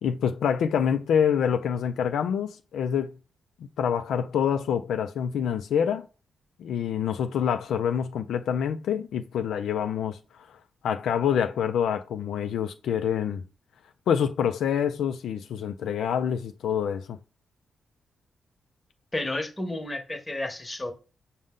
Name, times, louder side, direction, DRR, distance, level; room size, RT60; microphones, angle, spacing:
voice 1, 0.0-3.1 3.8-6.1 6.6-10.2 10.5-10.6 10.8-13.4 14.1-17.2, left 8 dB, 85° left, 0.3 m, -26 dB
voice 2, 19.1-20.9, left 2 dB, 20° left, 1.0 m, -31 dB
5.2 x 2.1 x 3.7 m
cardioid pair, 75°, 0 cm